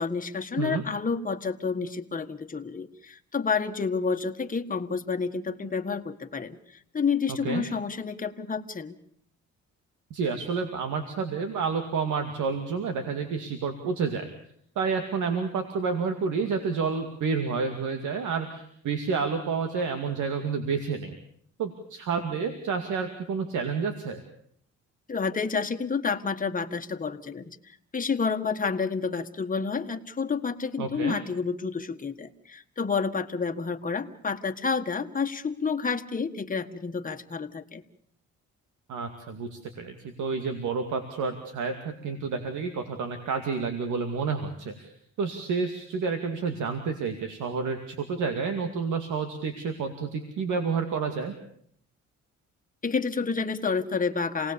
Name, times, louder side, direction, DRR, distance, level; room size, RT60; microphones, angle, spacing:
voice 1, 0.0-6.6 6.9-9.0 25.1-37.8 52.8-54.5, left 5 dB, 25° left, 6 dB, 1.6 m, -29 dB
voice 2, 10.1-14.3 14.8-21.1 21.6-24.2 30.8-31.2 38.9-44.9 45.2-51.3, right 5 dB, 80° right, 6 dB, 2.4 m, -29 dB
28.0 x 18.5 x 7.1 m, 0.66 s
cardioid pair, 90°, 30 cm